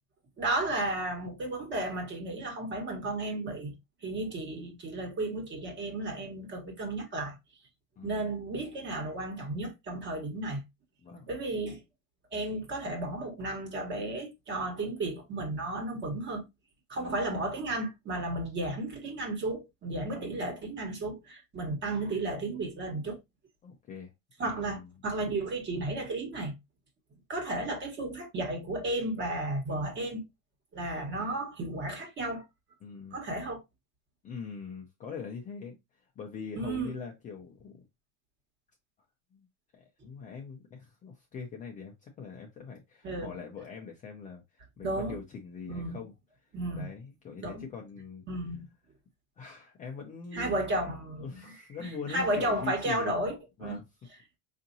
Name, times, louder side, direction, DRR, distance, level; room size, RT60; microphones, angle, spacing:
voice 1, 0.4-3.7 4.0-7.4 8.0-10.6 11.3-11.8 12.3-16.4 16.9-23.2 24.4-26.5 27.3-30.2 30.7-32.4 33.1-33.6 36.6-36.9 43.0-43.4 44.8-45.2 45.7-46.0 46.5-46.9 47.4-47.6 48.3-48.6 50.3-51.5 51.8-53.3 53.6-53.8, right 2 dB, 25° right, 1.4 m, -33 dB
voice 2, 8.0-8.4 11.0-11.3 16.9-17.2 20.1-20.5 23.6-24.1 24.4-24.9 32.8-33.2 34.2-37.8 39.3-39.5 39.7-44.4 44.8-46.1 46.8-48.3 49.4-50.7 51.1-53.1 53.6-53.8, left 5 dB, 20° left, 0.5 m, -42 dB
5.0 x 2.7 x 2.7 m
supercardioid pair, 155°, 40 cm